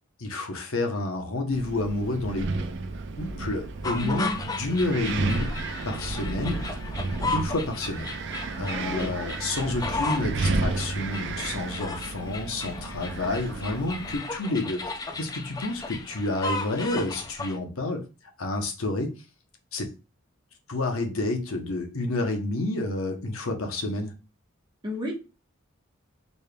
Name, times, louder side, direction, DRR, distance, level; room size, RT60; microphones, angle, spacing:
voice 1, 0.2-2.5 3.2-5.5 5.8-6.8 7.0-8.1 8.6-18.0 18.4-19.1 19.7-19.9 20.7-24.2, left 2 dB, 90° left, 4 dB, 0.8 m, -29 dB
Wind, 1.5-14.2, right 3 dB, 60° right, 0.4 m, -32 dB
sound 1, 3.8-17.6, left 3 dB, 20° left, 0.3 m, -35 dB
voice 2, 4.0-4.3 8.7-9.1 24.8-25.1, equal, 20° right, -2 dB, 0.9 m, -31 dB
4.2 x 3.3 x 2.2 m, 0.30 s
head